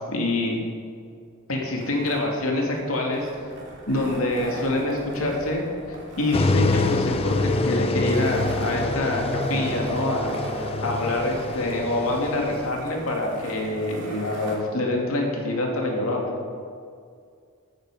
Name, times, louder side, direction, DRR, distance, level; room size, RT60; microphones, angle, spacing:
voice 1, 0.1-0.6 1.5-3.3 3.9-16.3, left 1 dB, 80° left, 0 dB, 2.4 m, -26 dB
sound 1, 1.8-14.6, right 1 dB, 55° right, 2.8 m, -37 dB
sound 2, 6.3-12.7, left 3 dB, 25° left, 0.4 m, -26 dB
13.0 x 9.2 x 5.0 m, 2.2 s
head